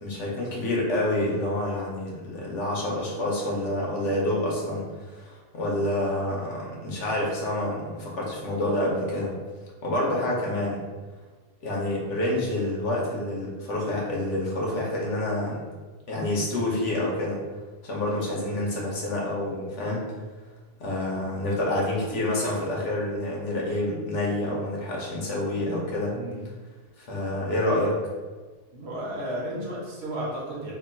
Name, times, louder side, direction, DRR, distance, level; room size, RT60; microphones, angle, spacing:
voice 1, 0.0-9.3 9.8-10.8 11.6-15.6 16.1-17.4 17.8-20.1 20.8-26.1 27.0-28.0, left 1 dB, 90° left, -3 dB, 1.3 m, -28 dB
voice 2, 26.1-26.5 28.7-30.7, equal, 65° right, -5 dB, 1.3 m, -33 dB
3.5 x 2.2 x 4.4 m, 1.3 s
omnidirectional pair, 1.2 m